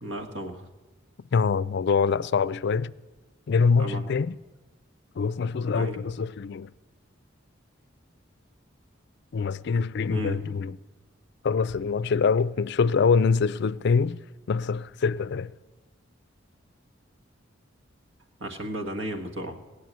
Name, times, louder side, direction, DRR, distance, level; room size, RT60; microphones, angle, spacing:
voice 1, 0.0-0.7 3.8-4.1 5.7-6.0 10.1-10.4 18.4-19.6, right 1 dB, 70° right, 1.5 m, -34 dB
voice 2, 1.3-2.9 3.5-4.3 5.2-6.7 9.3-10.8 11.4-14.2 14.5-15.5, left 5 dB, 60° left, 0.4 m, -24 dB
18.0 x 6.8 x 9.2 m
head